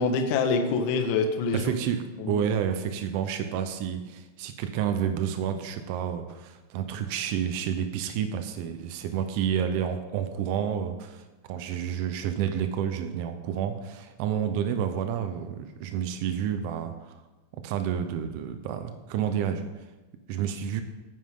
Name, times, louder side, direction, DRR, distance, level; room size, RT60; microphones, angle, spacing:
voice 1, 0.0-1.7 2.2-2.5, left 4 dB, 45° left, 5 dB, 1.4 m, -26 dB
voice 2, 1.5-17.2 17.5-19.6 20.3-20.8, right 8 dB, 45° right, 8 dB, 0.9 m, -30 dB
14.5 x 9.5 x 3.8 m, 1.1 s
supercardioid pair, 165°, 0 cm